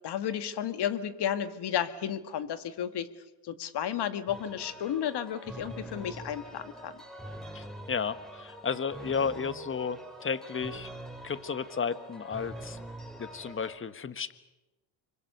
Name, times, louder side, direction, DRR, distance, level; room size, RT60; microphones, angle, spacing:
voice 1, 0.0-3.1 3.4-6.9, left 9 dB, 55° left, 10 dB, 2.0 m, -32 dB
sound 1, 4.3-13.8, right 1 dB, ahead, 4.1 m, -44 dB
voice 2, 7.5-10.9 11.2-12.8 13.2-14.3, left 6 dB, 25° left, 13 dB, 1.4 m, -33 dB
26.0 x 24.0 x 6.9 m, 1.1 s
supercardioid pair, 80°, 49 cm